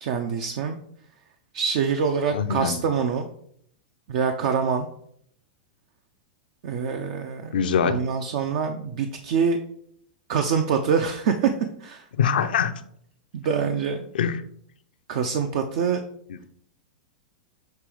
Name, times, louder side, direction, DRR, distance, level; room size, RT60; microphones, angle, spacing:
voice 1, 0.0-0.8 1.5-3.3 4.1-4.9 6.6-7.5 7.8-9.6 10.3-11.5 11.8-12.0 13.3-14.1 15.1-16.0, right 6 dB, 60° right, 6 dB, 0.6 m, -25 dB
voice 2, 2.3-2.8 7.5-8.0 12.2-12.7 14.1-14.4 16.3-16.4, left 7 dB, 80° left, 9 dB, 0.6 m, -23 dB
6.7 x 3.0 x 4.9 m, 0.67 s
hypercardioid pair, 125°, 5 cm